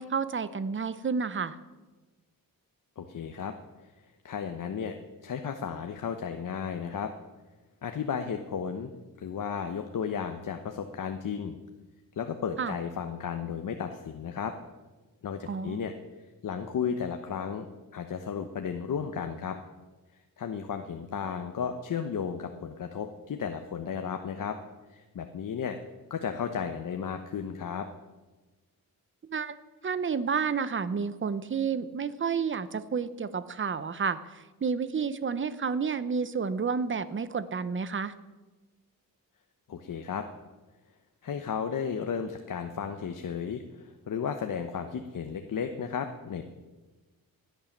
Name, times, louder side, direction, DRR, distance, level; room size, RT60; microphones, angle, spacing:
voice 1, 0.0-1.6 12.6-12.7 15.5-15.8 29.3-29.6 29.8-38.1, right 5 dB, 35° right, 14 dB, 0.8 m, -30 dB
voice 2, 3.0-3.5 4.2-7.1 7.8-8.9 9.2-11.6 12.1-14.5 15.2-15.9 16.4-17.7 17.9-19.6 20.4-24.6 24.9-25.8 26.1-27.9 39.7-40.3 41.2-46.4, left 7 dB, 60° left, 6 dB, 1.0 m, -34 dB
16.0 x 10.0 x 7.3 m, 1.2 s
wide cardioid pair, 130°, 36 cm